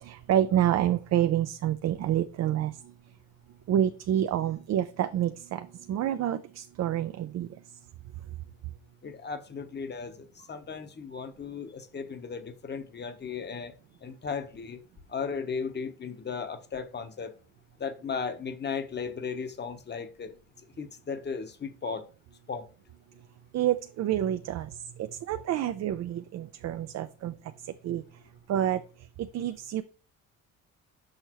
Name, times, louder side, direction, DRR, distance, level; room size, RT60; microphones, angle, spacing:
voice 1, 0.0-2.7 3.7-7.5 23.5-24.7 25.0-27.3 27.8-28.0 28.5-28.8 29.3-29.8, right 11 dB, 55° right, 0.5 m, -28 dB
voice 2, 9.0-13.7 14.0-14.8 15.1-17.3 17.8-20.3 20.8-22.0 22.5-22.7, left 5 dB, 30° left, 1.0 m, -36 dB
6.4 x 5.3 x 3.0 m
cardioid pair, 90°, 32 cm